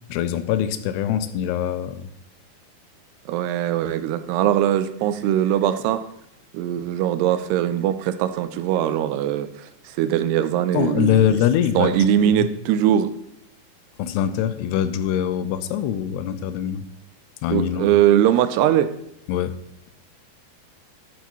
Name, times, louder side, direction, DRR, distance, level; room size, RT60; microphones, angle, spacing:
voice 1, 0.1-2.1 10.7-12.5 14.0-16.9 17.4-18.0 19.3-19.6, left 10 dB, 85° left, 12 dB, 2.6 m, -23 dB
voice 2, 3.3-6.0 6.5-9.5 10.0-11.4 11.8-13.1 17.5-18.9, right 11 dB, 85° right, 11 dB, 2.6 m, -21 dB
12.0 x 10.5 x 3.0 m, 0.76 s
omnidirectional pair, 4.8 m